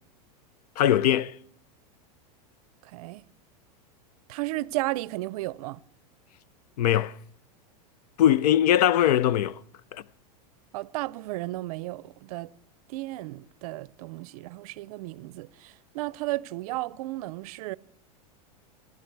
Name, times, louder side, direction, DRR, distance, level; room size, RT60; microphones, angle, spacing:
voice 1, 0.8-1.4 6.8-7.2 8.2-9.6 9.9-10.0, left 11 dB, 75° left, 0.6 m, -21 dB
voice 2, 2.8-3.2 4.3-5.8 10.7-12.5 12.9-17.8, right 19 dB, 65° right, 0.5 m, -34 dB
26.0 x 11.0 x 4.6 m
supercardioid pair, 125°, 20 cm